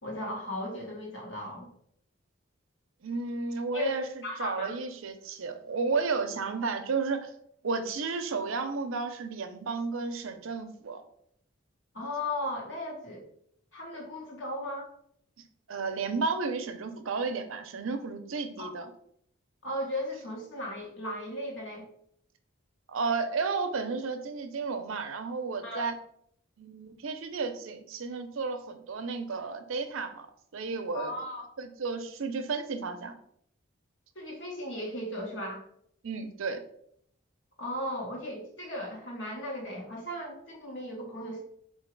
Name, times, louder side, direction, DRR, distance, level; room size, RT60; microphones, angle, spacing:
voice 1, 0.0-1.7 3.7-4.7 11.9-13.2 13.7-14.9 18.6-18.7 19.6-21.8 25.6-25.9 30.9-31.5 34.1-35.6 37.6-41.4, left 1 dB, 60° left, -1 dB, 1.3 m, -36 dB
voice 2, 3.0-7.3 7.6-11.0 15.7-18.9 22.9-25.9 26.6-30.3 30.5-31.1 31.6-33.1 36.0-36.6, right 4 dB, 75° right, 8 dB, 0.5 m, -32 dB
3.9 x 2.8 x 4.5 m, 0.69 s
head